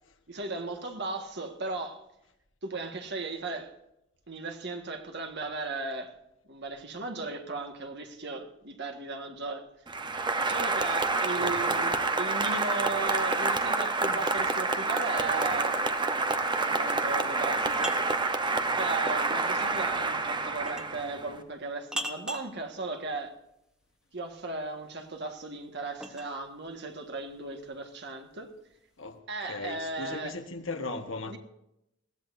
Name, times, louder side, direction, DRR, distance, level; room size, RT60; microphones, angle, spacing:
voice 1, 0.3-2.0 2.6-3.8 4.3-6.1 6.5-9.7 10.4-15.8 16.6-17.9 18.8-23.3 24.1-28.5 29.3-30.4 31.3-31.4, right 3 dB, 60° right, 1.7 m, -36 dB
Applause, 9.9-21.4, right 3 dB, 25° right, 0.9 m, -28 dB
voice 2, 11.4-11.7 29.0-29.2 29.5-31.4, left 3 dB, 80° left, 1.5 m, -37 dB
sound 1, 17.7-18.3 20.7-21.0 21.9-22.5 24.8-26.3, equal, 5° right, 1.1 m, -38 dB
21.0 x 16.0 x 2.7 m
head